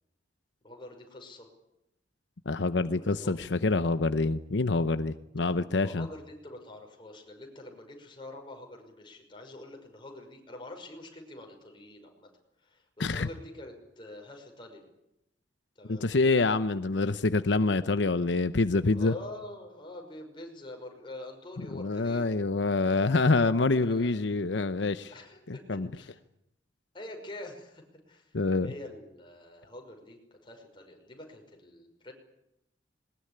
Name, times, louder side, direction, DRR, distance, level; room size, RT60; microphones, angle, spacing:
voice 1, 0.6-1.5 3.0-3.4 5.8-12.3 12.6-14.8 15.8-16.1 18.9-22.2 23.8-24.2 25.1-25.6 25.9-26.2 26.9-28.3 28.6-32.1, left 1 dB, 30° left, 2 dB, 5.7 m, -46 dB
voice 2, 2.5-6.1 13.0-13.3 15.9-19.1 21.7-25.1 25.5-25.9 28.3-28.7, left 3 dB, 85° left, 12 dB, 0.8 m, -26 dB
21.5 x 20.0 x 9.9 m, 0.83 s
head